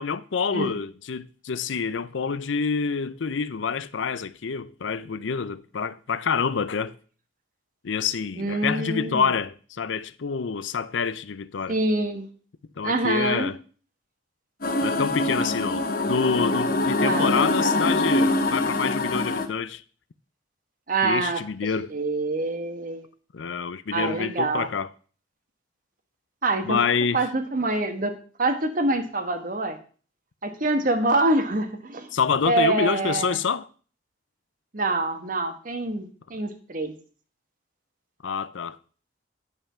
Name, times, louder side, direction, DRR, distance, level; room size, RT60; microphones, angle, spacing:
voice 1, 0.0-7.0 7.8-11.8 12.8-13.6 14.8-19.8 21.0-21.9 23.3-24.9 26.6-27.3 32.1-33.7 38.2-38.8, left 5 dB, 80° left, 0.5 m, -27 dB
voice 2, 8.4-9.3 11.7-12.3 12.8-13.5 17.0-17.9 20.9-21.4 21.9-23.0 23.9-24.7 26.4-26.8 27.1-28.1 28.4-29.8 30.4-32.1 32.4-33.4 34.7-36.9, right 2 dB, 45° right, 1.3 m, -25 dB
sound 1, 14.6-19.5, left 2 dB, 50° left, 1.0 m, -24 dB
9.4 x 5.6 x 5.6 m
head